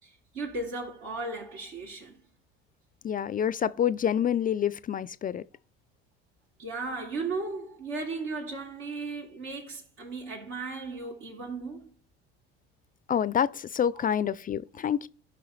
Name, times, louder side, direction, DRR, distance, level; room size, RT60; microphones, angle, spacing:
voice 1, 0.0-2.2 6.6-11.9 13.9-14.1, right 3 dB, 80° right, 3.5 m, -36 dB
voice 2, 3.0-5.4 13.1-15.1, left 9 dB, 30° left, 0.4 m, -27 dB
15.5 x 5.7 x 3.2 m
hypercardioid pair, 75°, 29 cm